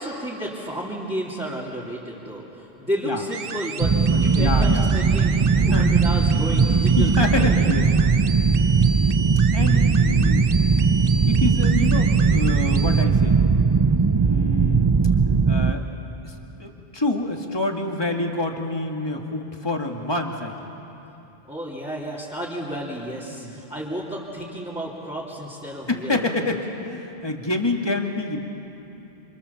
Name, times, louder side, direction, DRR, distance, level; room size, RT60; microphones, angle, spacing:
voice 1, 0.0-7.6 21.4-26.4, equal, 5° right, -8 dB, 3.0 m, -32 dB
sound 1, 3.3-13.0, right 5 dB, 65° right, 1.0 m, -34 dB
sound 2, 3.8-15.7, right 5 dB, 30° right, 0.5 m, -19 dB
voice 2, 4.1-4.9 5.7-6.0 7.0-7.9 9.5-10.4 11.3-13.4 14.1-15.0 15.5-15.8 16.2-20.6 23.3-23.6 25.9-28.4, left 2 dB, 25° left, 2 dB, 2.0 m, -27 dB
27.5 x 27.0 x 7.1 m, 3.0 s
omnidirectional pair, 1.0 m